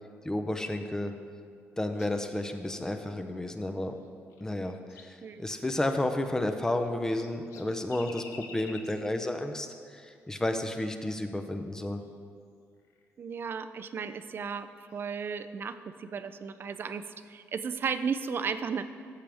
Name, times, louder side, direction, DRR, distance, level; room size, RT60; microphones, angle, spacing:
voice 1, 0.2-1.1 1.8-3.9 4.4-12.0, left 1 dB, 10° left, 7 dB, 0.7 m, -32 dB
sound 1, 1.9-2.6 3.9-5.2 5.6-5.8 6.5-9.1 10.6-10.9 12.0-12.1 12.8-13.1 14.9-15.2, left 5 dB, 75° left, 0.9 m, -51 dB
voice 2, 13.2-18.9, right 6 dB, 45° right, 11 dB, 0.5 m, -34 dB
14.5 x 7.5 x 3.5 m, 2.2 s
cardioid pair, 105°, 5 cm